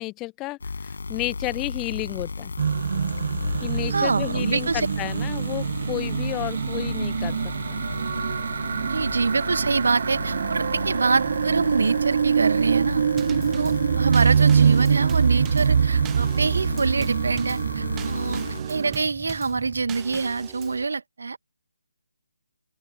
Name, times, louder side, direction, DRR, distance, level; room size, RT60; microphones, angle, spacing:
voice 1, 0.0-2.5 3.6-7.8, left 21 dB, 15° left, 0.3 m, -32 dB
sound 1, 0.6-18.6, left 4 dB, 60° left, 6.1 m, -34 dB
sound 2, 2.6-19.0, right 7 dB, 45° right, 0.5 m, -24 dB
voice 2, 3.9-4.9 8.9-13.0 13.6-21.4, right 4 dB, 60° right, 1.4 m, -25 dB
Drum kit / Snare drum / Bass drum, 13.2-20.9, right 17 dB, 15° right, 0.8 m, -41 dB
open air
figure-of-eight pair, 145°, 0 cm